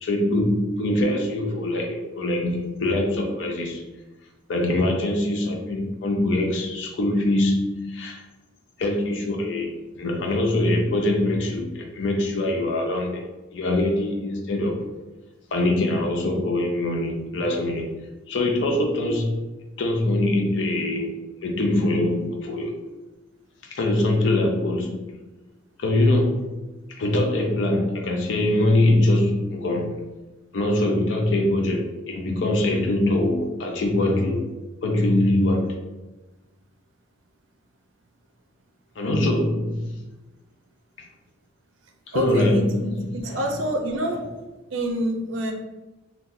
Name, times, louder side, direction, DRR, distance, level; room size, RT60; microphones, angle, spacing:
voice 1, 0.0-3.9 4.5-8.2 8.8-13.2 13.5-15.0 15.5-18.0 18.3-19.4 19.8-21.2 21.4-22.8 23.7-25.0 25.8-26.5 27.0-30.0 30.5-34.4 34.8-35.7 39.0-39.9 42.1-43.4, left 1 dB, 65° left, 1 dB, 0.4 m, -23 dB
voice 2, 42.1-44.3 44.7-45.5, right 1 dB, 70° right, 4 dB, 0.5 m, -27 dB
2.7 x 2.2 x 3.8 m, 1.1 s
head